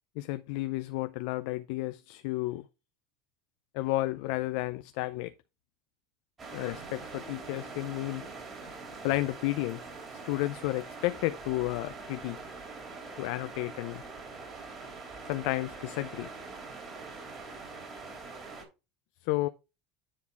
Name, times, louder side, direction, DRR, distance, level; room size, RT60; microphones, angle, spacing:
voice 1, 0.2-2.7 3.7-5.3 6.5-8.2 9.0-9.8 10.2-12.4 13.2-14.0 15.2-16.3 19.2-19.5, left 18 dB, 75° left, 0.4 m, -32 dB
sound 1, 6.4-18.6, right 4 dB, 30° right, 3.3 m, -44 dB
9.9 x 4.0 x 4.6 m
supercardioid pair, 125°, 0 cm